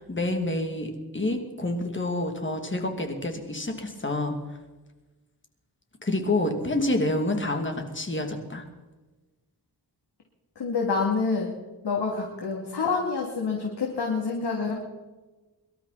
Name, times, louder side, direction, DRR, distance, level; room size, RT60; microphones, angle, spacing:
voice 1, 0.0-4.3 6.0-8.6, left 2 dB, 30° left, 4 dB, 2.7 m, -28 dB
voice 2, 10.6-11.5 11.8-14.7, left 4 dB, 85° left, 0 dB, 2.9 m, -27 dB
24.0 x 12.5 x 4.2 m, 1.2 s
wide cardioid pair, 105°, 40 cm